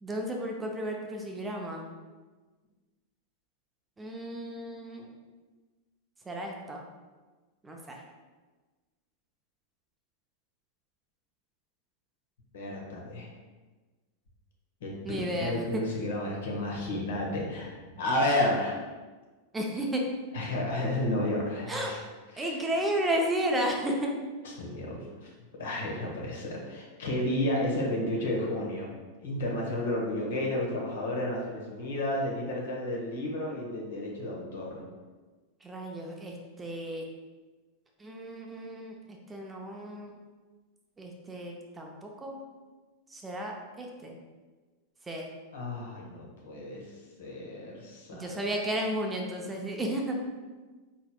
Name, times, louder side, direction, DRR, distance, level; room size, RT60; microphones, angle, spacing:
voice 1, 0.0-1.9 4.0-5.1 6.3-6.8 7.6-8.0 15.0-15.8 19.5-20.0 21.7-21.9 22.4-24.1 35.6-37.0 38.0-38.9 39.3-40.2 41.0-42.4 43.1-44.1 45.1-45.3 48.1-50.1, right 1 dB, 15° right, 0 dB, 0.5 m, -33 dB
voice 2, 12.5-13.3 14.8-18.8 20.3-22.0 22.3-22.7 24.4-25.3 25.6-28.9 29.2-34.8 45.5-46.9 47.2-48.4, left 1 dB, 60° left, -2 dB, 1.0 m, -32 dB
4.4 x 4.0 x 2.2 m, 1.3 s
figure-of-eight pair, 90°, 0 cm